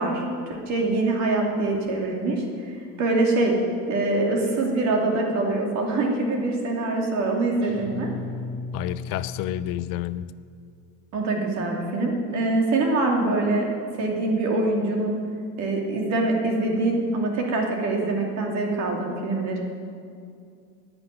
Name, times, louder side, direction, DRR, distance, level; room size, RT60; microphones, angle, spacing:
voice 1, 0.0-3.5 3.9-8.1 11.1-13.7 13.9-15.2 15.6-19.6, right 2 dB, 50° right, 0 dB, 2.9 m, -24 dB
Guitar, 7.6-10.2, left 4 dB, 15° right, 4.3 m, -36 dB
voice 2, 8.7-10.3, left 13 dB, 70° left, 15 dB, 0.6 m, -29 dB
11.0 x 10.0 x 9.5 m, 2.3 s
cardioid pair, 160°, 34 cm